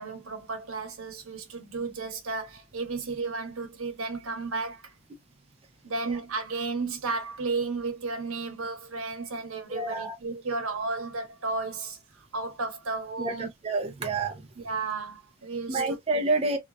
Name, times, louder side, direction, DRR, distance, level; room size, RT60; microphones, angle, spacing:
voice 1, 0.0-4.9 5.8-13.5 14.5-16.0, right 3 dB, 85° right, 0.9 m, -33 dB
voice 2, 9.7-10.2 13.2-14.5 15.7-16.6, right 3 dB, 30° right, 0.4 m, -28 dB
2.8 x 2.3 x 2.2 m
head